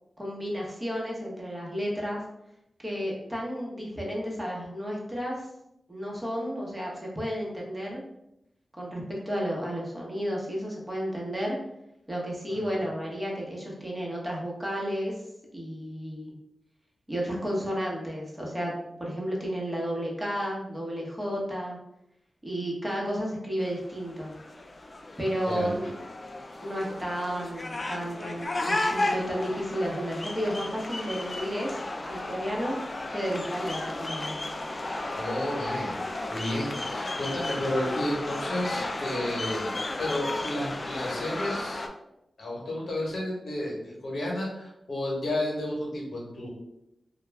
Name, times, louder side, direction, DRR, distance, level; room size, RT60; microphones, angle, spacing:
voice 1, 0.2-2.2 2.8-5.5 5.9-8.0 8.8-11.6 12.1-15.1 15.5-16.3 17.1-21.8 22.4-24.3 25.2-25.9 26.6-31.8 32.0-32.8 33.1-34.4, equal, 20° right, -3 dB, 0.9 m, -32 dB
sound 1, 23.6-41.9, left 2 dB, 40° left, 0.3 m, -34 dB
voice 2, 25.5-25.9 35.1-39.7 40.0-41.9 42.4-46.5, left 1 dB, 65° left, -3 dB, 1.0 m, -32 dB
2.3 x 2.2 x 3.2 m, 0.84 s
cardioid pair, 45°, 0 cm